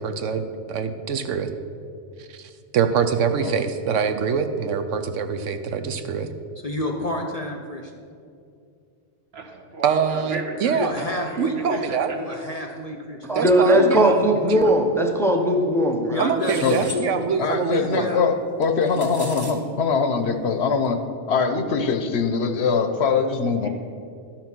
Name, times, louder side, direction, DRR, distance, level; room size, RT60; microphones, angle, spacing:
voice 1, 0.0-1.5 2.4-6.3 9.8-11.0 11.4-12.2 13.3-14.2 14.5-14.7 16.2-18.1, right 6 dB, 80° right, 8 dB, 1.0 m, -24 dB
voice 2, 6.6-7.9 10.7-11.8 12.1-13.2 16.1-17.4 17.7-18.2, left 2 dB, 40° left, 2 dB, 0.6 m, -30 dB
voice 3, 9.3-11.4 11.7-12.4 23.6-23.7, right 3 dB, 60° right, 1 dB, 1.5 m, -35 dB
voice 4, 13.2-16.3 16.6-16.7, equal, 5° left, 3 dB, 0.7 m, -19 dB
sound 1, 16.4-17.0 18.6-19.5, left 1 dB, 20° right, 1.2 m, -37 dB
voice 5, 17.4-21.0 21.3-23.7, left 5 dB, 65° left, 7 dB, 0.9 m, -22 dB
12.0 x 6.0 x 6.0 m, 2.5 s
omnidirectional pair, 1.3 m